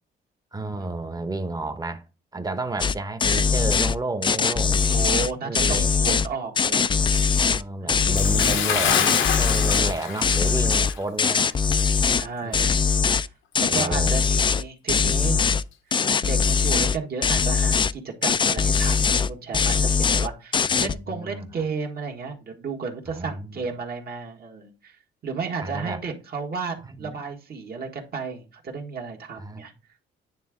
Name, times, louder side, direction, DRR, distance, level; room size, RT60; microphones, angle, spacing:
voice 1, 0.5-2.0 2.3-4.8 5.4-6.2 7.4-11.5 12.4-12.8 13.5-14.2 18.3-18.8 21.1-21.4 23.1-23.6 25.6-26.0 26.8-27.2 29.4-29.7, right 2 dB, 20° right, 0.9 m, -32 dB
sound 1, 2.8-2.9 3.2-3.9 4.2-6.3 6.6-7.6 7.9-8.6 8.9-9.9 10.2-12.3 12.5-13.3 13.5-14.6 14.9-15.6 15.9-17.0 17.2-17.9 18.2-19.3 19.5-20.3 20.5-20.9, left 5 dB, 25° left, 0.3 m, -21 dB
voice 2, 4.9-6.9 7.8-8.2 12.2-12.7 13.6-15.5 16.2-24.9 25.2-29.7, right 5 dB, 50° right, 1.6 m, -33 dB
Bathtub (filling or washing) / Splash splatter, 8.2-11.0 11.3-11.5 12.1-12.2, left 8 dB, 75° left, 0.9 m, -26 dB
9.4 x 3.5 x 3.6 m
cardioid pair, 90°, 20 cm